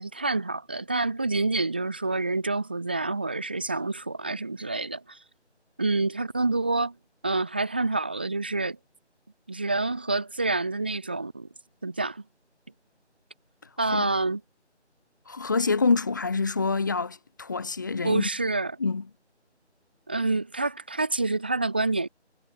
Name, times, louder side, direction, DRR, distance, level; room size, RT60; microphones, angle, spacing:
voice 1, 0.0-5.2 5.8-6.9 7.2-8.8 9.5-11.5 11.8-12.2 13.8-14.4 18.0-18.7 20.1-22.1, right 3 dB, 10° right, 2.1 m, -27 dB
voice 2, 15.3-18.3 18.8-19.0, left 4 dB, 15° left, 3.7 m, -26 dB
figure-of-eight pair, 175°, 35 cm